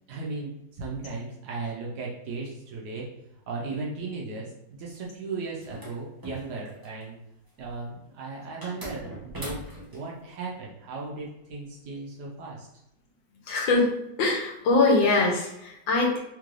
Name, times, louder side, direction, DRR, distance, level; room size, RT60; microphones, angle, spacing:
voice 1, 0.1-3.1 3.5-4.5 4.8-7.2 7.6-9.6 9.9-12.7, right 3 dB, 70° right, -3 dB, 1.1 m, -36 dB
sound 1, 5.6-7.0 8.6-10.0, right 1 dB, 35° right, 0.3 m, -40 dB
voice 2, 13.5-13.9 14.2-16.2, left 3 dB, 75° left, -1 dB, 1.5 m, -22 dB
3.6 x 3.1 x 2.5 m, 0.84 s
omnidirectional pair, 2.1 m